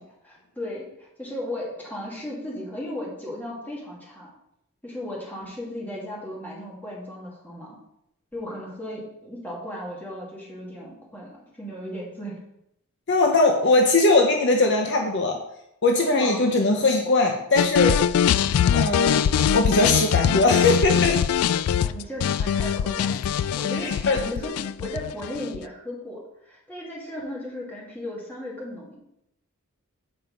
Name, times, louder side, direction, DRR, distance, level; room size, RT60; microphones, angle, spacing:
voice 1, 0.2-4.3 4.8-7.8 8.3-12.4 16.1-16.4 21.7-24.0 24.2-29.0, left 1 dB, 10° left, -5 dB, 2.2 m, -36 dB
voice 2, 13.1-15.4 15.8-18.0 18.7-19.3 19.5-21.2 23.7-24.2, left 2 dB, 50° left, 3 dB, 0.7 m, -20 dB
sound 1, 17.6-25.6, left 8 dB, 80° left, 0.3 m, -22 dB
7.6 x 4.5 x 5.1 m, 0.80 s
head